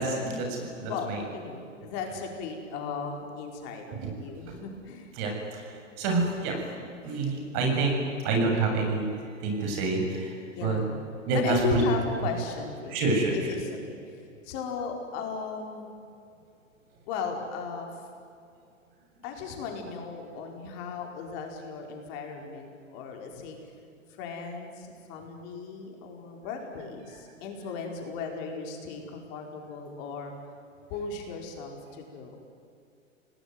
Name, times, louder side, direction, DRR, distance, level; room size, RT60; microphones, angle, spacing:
voice 1, 0.0-1.2 3.9-4.1 4.5-4.6 5.2-6.6 7.0-9.1 9.4-10.4 10.6-10.8 11.3-11.8 12.9-13.5, right 3 dB, 40° right, 2 dB, 8.0 m, -27 dB
voice 2, 0.9-5.1 10.5-11.0 11.3-15.9 17.1-18.0 19.2-23.7 24.2-30.3 30.9-32.4, left 5 dB, 40° left, 2 dB, 5.0 m, -36 dB
29.0 x 19.0 x 9.5 m, 2.5 s
figure-of-eight pair, 110°, 38 cm